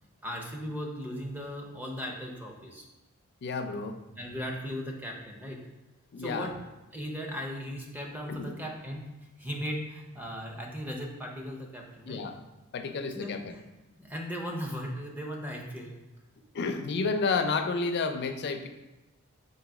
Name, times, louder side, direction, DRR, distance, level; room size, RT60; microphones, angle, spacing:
voice 1, 0.2-2.9 4.2-5.6 6.2-6.6 6.9-9.1 9.4-12.2 13.1-13.6 14.0-16.0, equal, 10° right, 0 dB, 0.6 m, -37 dB
voice 2, 3.4-4.0 6.1-6.5 8.3-8.5 12.1-12.4 12.7-13.5 16.5-18.7, left 4 dB, 50° left, 7 dB, 0.4 m, -30 dB
3.9 x 2.6 x 4.7 m, 1.1 s
head